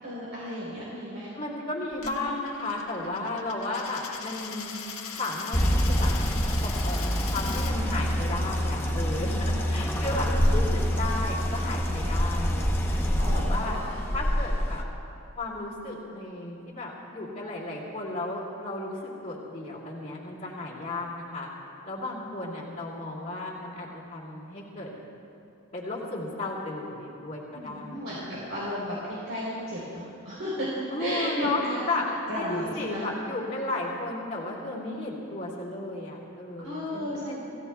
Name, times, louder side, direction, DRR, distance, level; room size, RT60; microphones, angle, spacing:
voice 1, 0.0-1.3 10.2-10.5 13.2-14.0 27.5-30.7 31.0-31.8 32.3-33.0 36.6-37.4, equal, 60° right, -7 dB, 3.7 m, -34 dB
voice 2, 1.4-4.7 5.2-6.1 6.6-13.0 13.3-13.8 14.1-14.8 15.4-21.5 21.8-24.9 25.7-28.0 30.9-32.1 32.4-37.4, left 2 dB, 30° left, -8 dB, 2.6 m, -34 dB
Coin (dropping), 1.9-7.7, left 6 dB, 75° left, 1.3 m, -40 dB
sound 1, 5.5-14.8, equal, 10° left, 0.8 m, -26 dB
27.5 x 16.0 x 2.3 m, 2.7 s
head